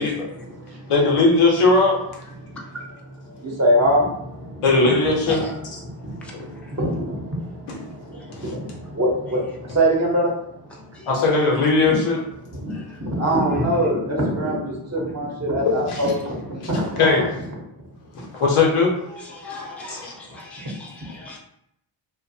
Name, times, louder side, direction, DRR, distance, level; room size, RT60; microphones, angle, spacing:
voice 1, 0.4-0.9 1.2-1.3 2.4-5.1 5.5-11.1 11.8-12.0 12.5-17.3 17.8-17.9 18.2-18.3 20.5-20.6, right 1 dB, 30° right, 0.8 m, -25 dB
voice 2, 0.9-2.0 4.6-5.4 6.3-6.5 7.7-7.8 11.1-12.2 15.9-16.0 17.0-17.3 18.1-20.1, left 3 dB, 85° left, 0.8 m, -19 dB
voice 3, 6.2-6.8 8.1-8.3 10.9-11.1 12.7-12.8 19.2-21.4, left 1 dB, 5° left, 0.5 m, -38 dB
2.5 x 2.2 x 2.6 m
cardioid pair, 80°, 49 cm